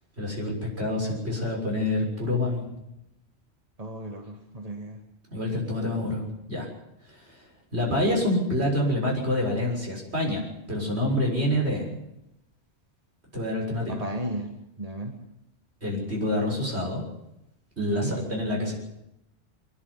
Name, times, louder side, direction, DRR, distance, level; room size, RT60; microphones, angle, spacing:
voice 1, 0.2-2.6 5.3-6.2 6.5-6.7 7.1-7.4 7.7-11.9 13.3-14.0 15.8-17.0 17.8-18.7, left 1 dB, 70° right, -1 dB, 7.2 m, -27 dB
voice 2, 3.8-5.0 13.9-14.5 14.8-15.1 17.8-18.2, right 1 dB, 35° right, 3 dB, 1.9 m, -33 dB
25.0 x 11.5 x 9.9 m, 0.85 s
omnidirectional pair, 1.1 m